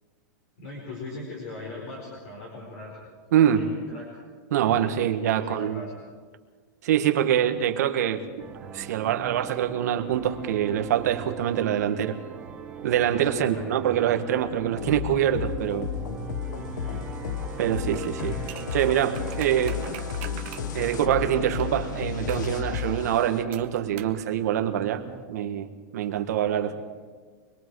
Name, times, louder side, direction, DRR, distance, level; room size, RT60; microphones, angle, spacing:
voice 1, 0.6-3.0 3.4-4.2 4.6-5.9 13.2-13.9 16.5-17.1 18.2-18.5 19.6-19.9 26.3-26.4 26.7-26.8, left 2 dB, 40° left, -2 dB, 4.5 m, -41 dB
voice 2, 3.3-3.7 4.5-5.8 6.8-8.2 8.7-12.1 12.8-15.9 17.6-18.3 18.7-19.8 20.7-26.8, right 10 dB, 60° right, 6 dB, 1.6 m, -25 dB
sound 1, 8.4-25.2, right 7 dB, 10° right, 0.8 m, -41 dB
sound 2, 14.8-23.4, left 9 dB, 75° left, 1.1 m, -33 dB
sound 3, 17.9-21.7 22.3-22.6 23.5-24.2 24.5-24.6, right 15 dB, 40° right, 1.1 m, -43 dB
25.0 x 22.0 x 4.9 m, 1.6 s
supercardioid pair, 175°, 10 cm